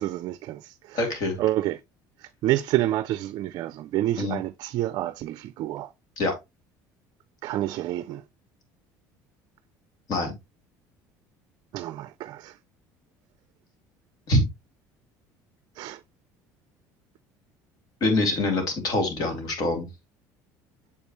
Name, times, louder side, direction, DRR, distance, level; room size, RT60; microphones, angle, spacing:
voice 1, 0.0-1.0 1.4-1.8 2.2-5.9 7.4-8.2 11.7-12.5 15.8-16.0, right 14 dB, 60° right, 0.4 m, -28 dB
voice 2, 0.9-1.3 4.2-4.4 6.2-6.3 10.1-10.3 14.3-14.4 18.0-19.9, left 2 dB, 55° left, 2.7 m, -24 dB
6.9 x 5.2 x 3.0 m
supercardioid pair, 105°, 8 cm